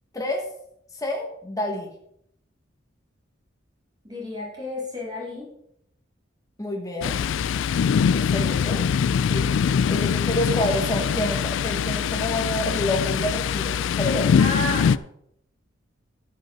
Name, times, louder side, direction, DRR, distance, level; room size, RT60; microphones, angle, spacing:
voice 1, 0.1-0.5 0.9-1.9 6.6-7.2 8.1-8.8 9.3-9.5 9.9-14.3, left 1 dB, 15° left, 0 dB, 1.2 m, -28 dB
voice 2, 4.0-5.5 14.4-15.0, left 1 dB, 20° right, -4 dB, 3.6 m, -31 dB
Thunder, 7.0-15.0, left 7 dB, 65° left, 0.3 m, -23 dB
13.0 x 5.4 x 5.7 m, 0.72 s
head